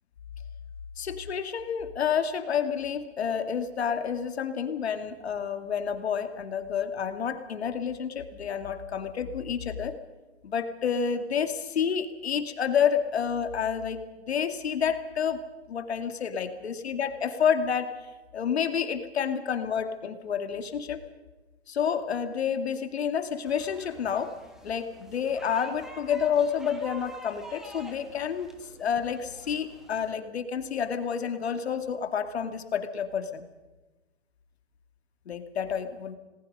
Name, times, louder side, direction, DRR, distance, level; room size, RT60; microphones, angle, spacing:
voice 1, 1.0-10.0 10.4-17.9 18.3-21.0 21.7-24.3 24.6-28.5 28.8-33.5 35.3-36.2, left 7 dB, 70° left, 8 dB, 2.4 m, -29 dB
sound 1, 23.4-30.1, right 1 dB, ahead, 1.2 m, -48 dB
28.5 x 20.0 x 5.4 m, 1.1 s
hypercardioid pair, 170°, 33 cm